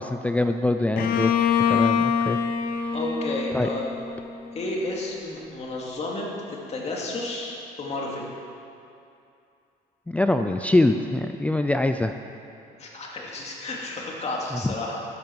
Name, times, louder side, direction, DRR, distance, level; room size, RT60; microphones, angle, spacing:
voice 1, 0.0-2.4 3.5-3.7 10.1-12.1 14.5-14.7, left 2 dB, 10° left, 6 dB, 0.4 m, -24 dB
Bowed string instrument, 1.0-4.7, left 7 dB, 60° left, 0.8 m, -25 dB
voice 2, 2.9-3.9 4.5-8.3 12.8-15.1, left 2 dB, 40° left, -2 dB, 2.5 m, -32 dB
12.0 x 10.5 x 4.8 m, 2.6 s
cardioid pair, 110°, 17 cm